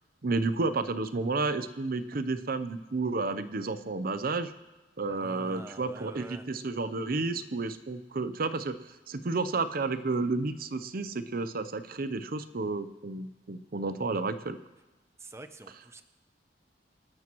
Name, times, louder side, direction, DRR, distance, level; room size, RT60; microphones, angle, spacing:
voice 1, 0.2-4.5 5.0-14.6, right 3 dB, 55° right, 11 dB, 0.7 m, -31 dB
voice 2, 5.1-6.5 15.2-16.0, right 2 dB, 15° right, 9 dB, 0.6 m, -46 dB
27.0 x 12.0 x 3.1 m, 1.1 s
head